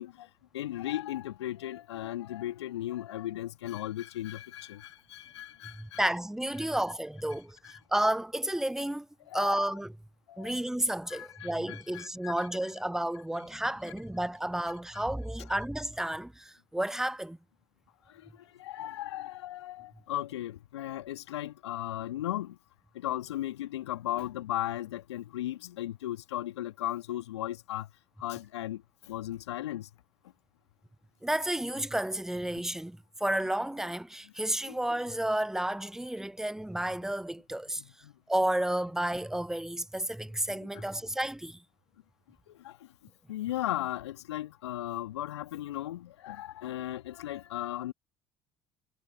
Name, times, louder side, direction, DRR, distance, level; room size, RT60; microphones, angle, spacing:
voice 1, 0.0-6.1 7.6-7.8 9.3-9.8 10.3-10.6 11.1-12.3 18.1-22.6 22.9-27.9 28.2-29.9 34.7-34.8 37.8-38.1 40.6-40.9 42.5-42.9 43.3-47.9, left 13 dB, 75° left, 2.2 m, -37 dB
voice 2, 5.6-9.1 9.3-9.9 10.4-17.4 31.2-37.8 38.3-41.6, right 1 dB, 5° right, 0.6 m, -31 dB
figure-of-eight pair, 55°, 14 cm